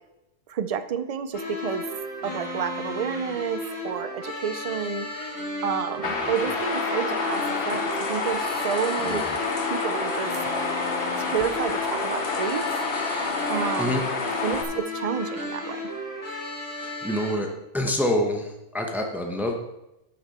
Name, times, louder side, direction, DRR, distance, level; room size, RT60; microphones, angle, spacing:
voice 1, 0.5-1.8 2.2-5.1 5.6-9.2 9.7-10.3 11.2-12.7 13.5-14.1 14.4-15.9, right 7 dB, 55° right, 11 dB, 0.4 m, -30 dB
sound 1, 1.3-17.3, left 1 dB, 15° left, 3.6 m, -34 dB
sound 2, 6.0-14.6, left 4 dB, 55° left, 1.2 m, -28 dB
voice 2, 9.0-9.4 10.4-10.5 12.9-13.3 13.8-14.0 16.8-19.5, left 1 dB, ahead, 2 dB, 1.0 m, -28 dB
12.0 x 7.2 x 4.3 m, 0.92 s
omnidirectional pair, 1.2 m